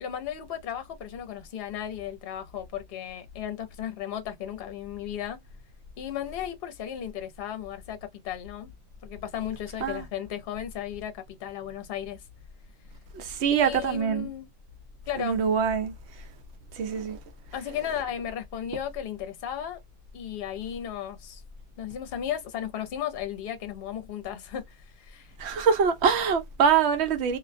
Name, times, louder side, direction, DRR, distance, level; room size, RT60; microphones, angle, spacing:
voice 1, 0.0-5.4 6.0-8.0 8.2-8.7 9.0-12.2 13.5-14.5 15.1-15.4 17.5-19.8 20.1-21.4 21.8-25.3, left 10 dB, 65° left, 0.8 m, -35 dB
voice 2, 13.1-14.3 15.2-15.9 16.8-17.2 25.4-27.4, right 6 dB, 70° right, 0.9 m, -24 dB
2.4 x 2.1 x 2.4 m
omnidirectional pair, 1.2 m